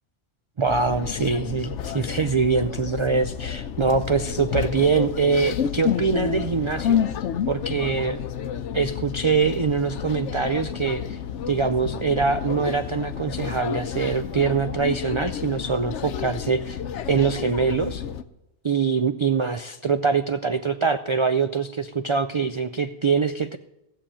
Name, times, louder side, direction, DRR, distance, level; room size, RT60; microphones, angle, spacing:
voice 1, 0.6-7.0 7.5-8.2 8.7-11.2 11.5-16.8 17.1-18.0 18.6-23.6, right 5 dB, 50° right, 10 dB, 0.3 m, -23 dB
sound 1, 0.7-18.2, left 8 dB, 85° left, 1.0 m, -30 dB
15.5 x 7.0 x 8.8 m, 0.89 s
omnidirectional pair, 1.2 m